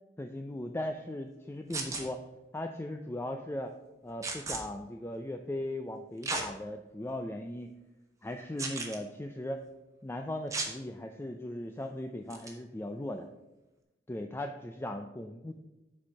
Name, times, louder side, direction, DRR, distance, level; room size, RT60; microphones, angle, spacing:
voice 1, 0.2-2.2 2.5-3.7 4.0-7.7 8.2-9.6 10.0-13.3 14.1-15.5, left 1 dB, 15° left, 5 dB, 0.4 m, -38 dB
sound 1, 1.7-2.0 4.2-4.6 6.2-6.5 7.1-7.2 8.6-9.0 10.5-10.7 12.3-12.5, right 3 dB, 20° right, 1.2 m, -34 dB
7.2 x 4.4 x 6.3 m, 1.0 s
head